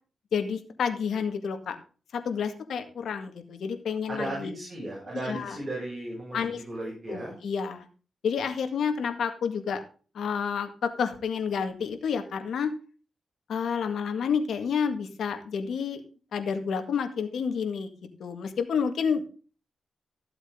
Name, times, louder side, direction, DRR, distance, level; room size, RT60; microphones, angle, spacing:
voice 1, 0.3-1.8 2.1-4.6 5.3-5.6 6.3-6.6 7.1-7.9 8.2-9.8 10.1-12.7 13.5-16.0 16.3-17.9 18.2-19.2, left 6 dB, 85° left, 6 dB, 1.9 m, -29 dB
voice 2, 4.1-7.4, right 1 dB, 35° right, -4 dB, 6.9 m, -35 dB
15.0 x 8.0 x 3.8 m, 0.38 s
cardioid pair, 95°, 0 cm